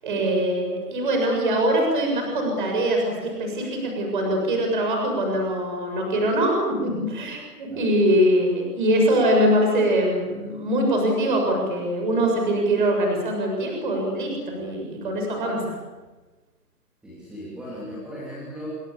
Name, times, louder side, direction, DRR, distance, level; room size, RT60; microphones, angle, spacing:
voice 1, 0.0-15.8, right 1 dB, 30° right, 1 dB, 7.3 m, -23 dB
voice 2, 17.0-18.8, equal, ahead, -8 dB, 3.1 m, -37 dB
29.5 x 27.0 x 7.2 m, 1.2 s
hypercardioid pair, 175°, 48 cm